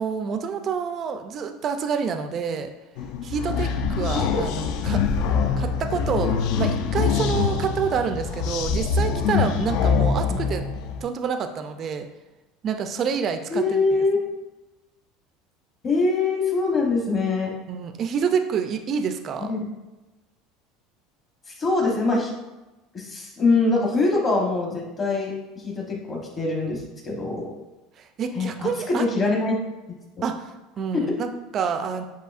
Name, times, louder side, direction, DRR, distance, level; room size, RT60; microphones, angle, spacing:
voice 1, 0.0-2.7 3.2-5.0 5.6-10.6 11.0-12.1 12.6-13.8 17.7-19.5 28.0-29.1 30.2-32.0, right 6 dB, 35° right, 7 dB, 0.3 m, -28 dB
sound 1, 3.0-11.0, left 6 dB, 60° left, 0.3 m, -24 dB
voice 2, 13.5-14.3 15.8-17.5 19.4-19.6 21.5-22.3 22.9-25.3 25.6-27.5 28.3-29.6 30.9-31.0, left 3 dB, 25° left, 0 dB, 0.9 m, -23 dB
7.6 x 2.7 x 2.4 m, 1.1 s
cardioid pair, 155°, 0 cm